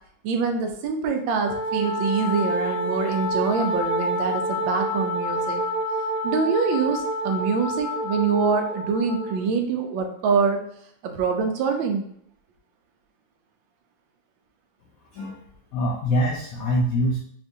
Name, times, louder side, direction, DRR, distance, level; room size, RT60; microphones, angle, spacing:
voice 1, 0.2-5.6 6.2-10.6 11.0-12.0, right 5 dB, 85° right, 4 dB, 1.3 m, -25 dB
Wind instrument woodwind instrument, 1.4-9.4, equal, 5° left, 0.7 m, -28 dB
voice 2, 15.7-17.2, equal, 80° left, -1 dB, 0.7 m, -24 dB
4.4 x 2.4 x 2.6 m, 0.66 s
omnidirectional pair, 2.1 m